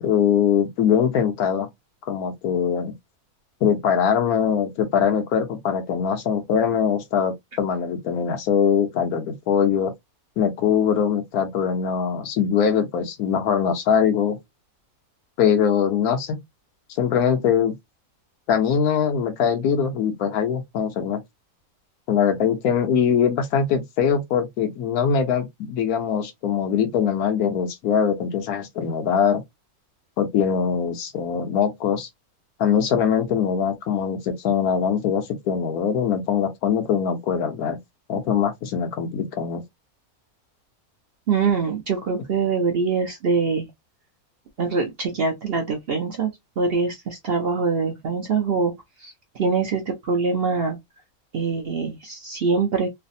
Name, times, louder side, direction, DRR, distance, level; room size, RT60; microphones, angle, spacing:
voice 1, 0.0-1.7 2.1-2.9 3.6-9.9 10.4-14.4 15.4-16.4 16.9-17.7 18.5-21.2 22.1-29.4 30.2-32.1 32.6-37.8 38.1-39.6, left 7 dB, 80° left, 1.2 m, -22 dB
voice 2, 41.3-43.7 44.6-48.7 49.0-50.8 51.3-52.9, right 4 dB, 55° right, 0.7 m, -24 dB
3.2 x 2.0 x 2.6 m
omnidirectional pair, 1.6 m